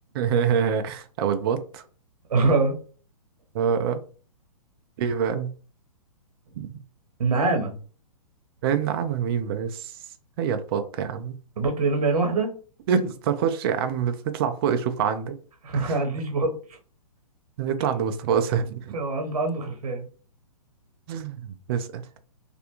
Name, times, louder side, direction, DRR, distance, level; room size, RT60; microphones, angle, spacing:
voice 1, 0.1-1.8 3.5-4.0 5.0-5.5 6.5-6.7 8.6-10.0 10.4-11.3 12.9-15.4 15.7-16.0 17.6-19.0 21.1-22.0, right 7 dB, 40° right, 8 dB, 0.4 m, -26 dB
voice 2, 2.3-2.8 7.2-7.7 11.6-12.5 15.6-16.5 18.9-20.1, right 3 dB, 75° right, 3 dB, 0.9 m, -24 dB
2.5 x 2.1 x 2.8 m, 0.39 s
hypercardioid pair, 130°, 19 cm